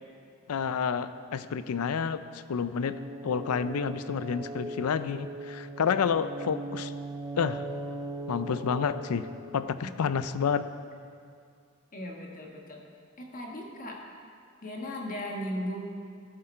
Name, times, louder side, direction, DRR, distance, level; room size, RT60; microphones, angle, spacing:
voice 1, 0.5-3.0 3.2-6.9 7.4-7.6 8.3-9.3 9.5-10.7, left 6 dB, 85° left, 13 dB, 0.4 m, -29 dB
sound 1, 2.8-9.4, right 2 dB, 15° right, 0.7 m, -39 dB
voice 2, 11.9-12.8 13.2-14.0 14.6-15.8, equal, 40° left, 0 dB, 1.4 m, -37 dB
15.0 x 7.5 x 4.5 m, 2.2 s
head